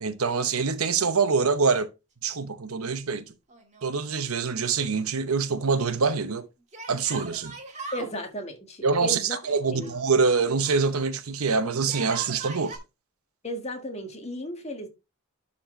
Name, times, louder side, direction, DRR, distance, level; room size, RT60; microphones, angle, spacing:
voice 1, 0.0-1.9 2.2-3.2 3.8-6.5 6.9-7.5 8.8-9.2 9.5-12.8, right 5 dB, 85° right, 0.9 m, -25 dB
Yell, 3.5-4.4 4.6-4.7 6.7-8.1 9.4-10.8 11.8-12.8, right 4 dB, 35° right, 1.9 m, -40 dB
voice 2, 7.9-9.4 9.7-10.0 13.4-14.9, equal, 30° left, 1.6 m, -34 dB
11.5 x 4.4 x 3.2 m
head